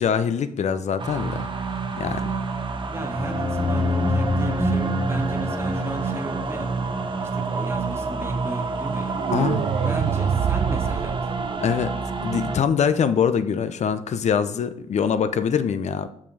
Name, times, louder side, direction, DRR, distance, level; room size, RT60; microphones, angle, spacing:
voice 1, 0.0-1.5 2.0-2.3 9.3-9.7 11.6-11.9 12.2-16.1, left 7 dB, 65° left, 11 dB, 0.7 m, -23 dB
sound 1, 1.0-12.6, right 4 dB, 40° right, 0.9 m, -28 dB
voice 2, 2.9-6.7 7.3-9.2 9.8-11.2, right 1 dB, 20° right, 4 dB, 1.6 m, -34 dB
sound 2, 3.1-7.6, left 4 dB, 25° left, 0.4 m, -28 dB
sound 3, 9.1-12.1, right 8 dB, 70° right, 0.5 m, -26 dB
7.0 x 5.7 x 4.8 m, 0.70 s
cardioid pair, 75°, 13 cm